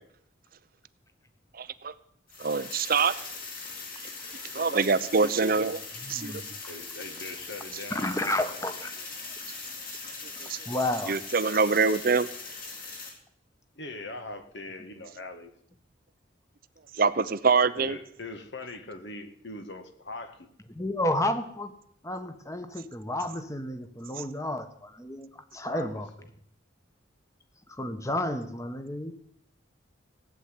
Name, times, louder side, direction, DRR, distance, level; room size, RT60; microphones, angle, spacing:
voice 1, 1.6-1.9 2.4-3.1 4.5-5.8 6.1-6.3 10.5-10.6 11.1-12.3 17.0-18.0, right 4 dB, 50° right, 14 dB, 0.7 m, -24 dB
sound 1, 2.3-13.1, left 4 dB, 50° left, 4.2 m, -40 dB
voice 2, 6.0-6.5 7.9-8.9 10.6-11.1 20.7-21.7 22.0-26.1 27.7-29.1, left 1 dB, 15° left, 9 dB, 1.4 m, -31 dB
voice 3, 6.7-8.6 13.8-15.5 17.7-20.5 25.5-26.3, left 2 dB, 65° left, 8 dB, 1.9 m, -41 dB
17.0 x 8.3 x 9.9 m, 0.68 s
head